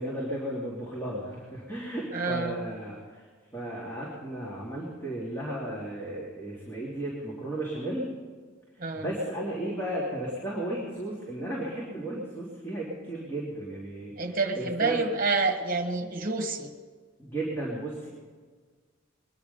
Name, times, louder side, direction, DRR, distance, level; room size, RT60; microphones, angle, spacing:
voice 1, 0.0-3.2 3.5-8.1 8.7-14.1 14.6-15.0 17.2-18.1, right 1 dB, 10° left, -7 dB, 2.9 m, -34 dB
voice 2, 2.1-2.6 8.8-9.1 14.2-16.7, right 3 dB, 45° right, 3 dB, 1.5 m, -28 dB
22.0 x 10.5 x 5.5 m, 1.5 s
head